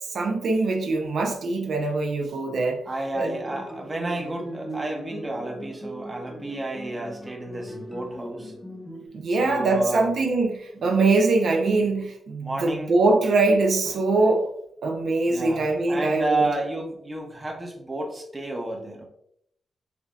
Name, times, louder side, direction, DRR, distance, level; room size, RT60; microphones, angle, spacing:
voice 1, 0.1-2.8 3.2-3.3 9.1-14.5 14.8-16.4, right 3 dB, 60° right, 2 dB, 0.6 m, -22 dB
voice 2, 2.9-8.5 9.3-10.1 12.4-12.9 15.2-19.1, right 2 dB, 20° right, 1 dB, 0.8 m, -31 dB
sound 1, 3.1-9.1, right 1 dB, 15° left, 1.0 m, -39 dB
6.9 x 2.7 x 2.4 m, 0.71 s
wide cardioid pair, 135°, 0 cm